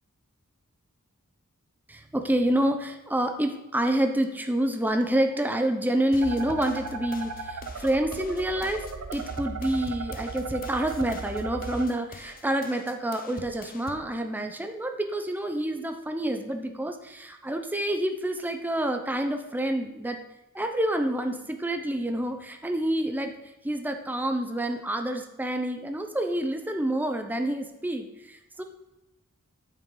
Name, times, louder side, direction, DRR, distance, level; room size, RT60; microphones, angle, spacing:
voice 1, 1.9-8.8 9.1-20.2 20.5-28.6, right 1 dB, 10° right, 5 dB, 0.6 m, -28 dB
sound 1, 6.1-14.1, left 3 dB, 40° left, 0.7 m, -45 dB
sound 2, 6.2-11.8, right 4 dB, 85° right, 0.7 m, -36 dB
8.8 x 7.4 x 3.9 m, 0.96 s
head